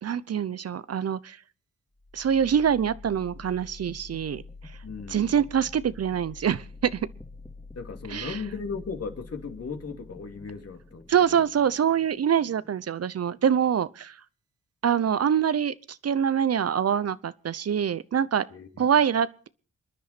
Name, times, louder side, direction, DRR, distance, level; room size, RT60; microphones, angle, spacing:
voice 1, 0.0-1.4 2.1-4.4 5.1-7.0 8.1-8.4 11.1-14.1 14.8-15.7 16.0-18.5 18.8-19.5, right 8 dB, 55° right, 0.8 m, -25 dB
sound 1, 2.0-13.9, left 3 dB, 5° left, 2.7 m, -47 dB
voice 2, 4.8-5.4 7.7-11.5 18.5-18.9, left 5 dB, 55° left, 2.8 m, -37 dB
27.0 x 10.5 x 4.3 m
cardioid pair, 60°, 30 cm